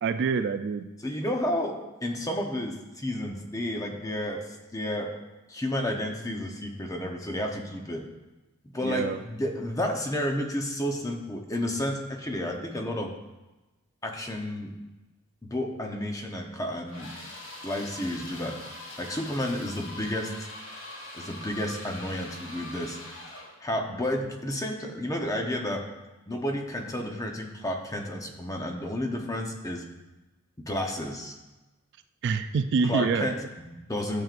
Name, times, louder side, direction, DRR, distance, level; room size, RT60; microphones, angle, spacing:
voice 1, 0.0-0.9 8.8-9.2 32.2-33.3, right 5 dB, 50° right, 10 dB, 0.3 m, -26 dB
voice 2, 1.0-5.1 5.5-8.0 8.7-13.1 14.0-14.7 15.4-17.1 17.6-18.6 19.0-20.3 21.1-23.0 23.6-25.8 26.3-29.8 30.7-31.4 32.8-34.2, left 1 dB, 15° left, 2 dB, 0.8 m, -31 dB
sound 1, 16.9-23.6, left 1 dB, 60° left, 2.0 m, -43 dB
12.0 x 7.5 x 2.5 m, 1.1 s
head